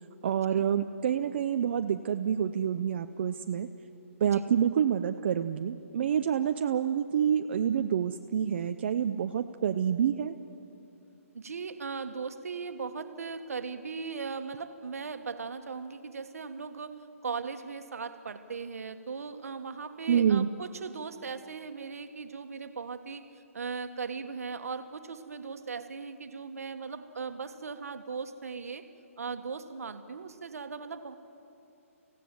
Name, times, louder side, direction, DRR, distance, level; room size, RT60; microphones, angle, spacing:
voice 1, 0.2-3.7 4.2-10.3 20.1-20.5, right 8 dB, 45° right, 8 dB, 0.6 m, -27 dB
voice 2, 11.3-28.9 29.2-31.1, right 5 dB, 80° right, 7 dB, 1.5 m, -38 dB
26.0 x 17.0 x 7.7 m, 2.7 s
hypercardioid pair, 160°, 8 cm